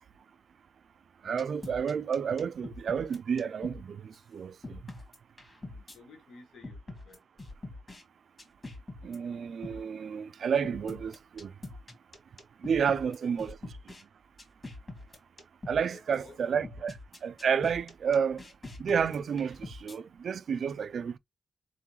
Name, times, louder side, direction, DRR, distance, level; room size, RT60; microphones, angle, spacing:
voice 1, 1.2-4.8 9.0-11.5 12.6-13.7 15.7-18.4 18.8-21.2, right 7 dB, 60° right, 0.3 m, -31 dB
sound 1, 1.4-3.8 4.1-4.2 4.6-6.0 6.6-8.0 8.4-9.2 9.6-9.8 10.6-14.0 14.4-15.8 16.1-16.2 16.6-20.0, left 2 dB, 25° left, 1.5 m, -44 dB
voice 2, 5.5-7.2 12.8-13.3 15.9-16.4, left 3 dB, 90° left, 1.4 m, -54 dB
4.0 x 3.6 x 3.0 m
wide cardioid pair, 125°, 0 cm